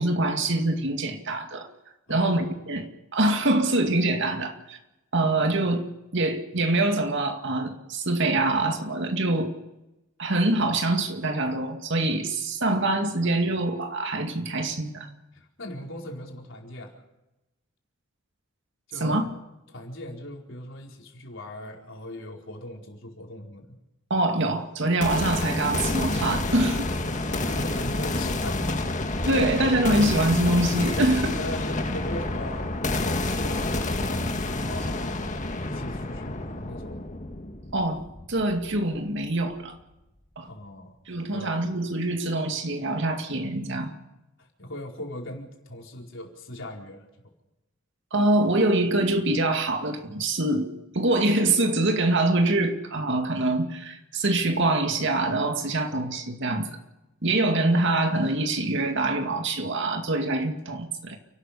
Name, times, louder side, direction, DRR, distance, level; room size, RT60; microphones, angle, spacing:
voice 1, 0.0-1.7 2.1-4.8 5.1-5.8 6.1-9.5 10.2-15.1 19.0-19.3 24.1-26.9 29.3-31.4 34.2-34.3 37.7-38.0 38.3-39.7 40.4-40.5 41.1-43.9 48.1-56.8 57.2-61.2, right 2 dB, 60° right, 5 dB, 2.3 m, -25 dB
voice 2, 2.1-2.5 15.3-17.0 18.9-19.2 19.7-23.8 27.2-29.7 31.4-34.2 34.6-37.0 40.4-40.9 41.3-41.6 44.4-47.1, left 1 dB, 65° left, 0 dB, 4.7 m, -39 dB
sound 1, 25.0-38.9, left 2 dB, 40° left, 2.0 m, -29 dB
30.0 x 12.5 x 6.8 m, 0.96 s
head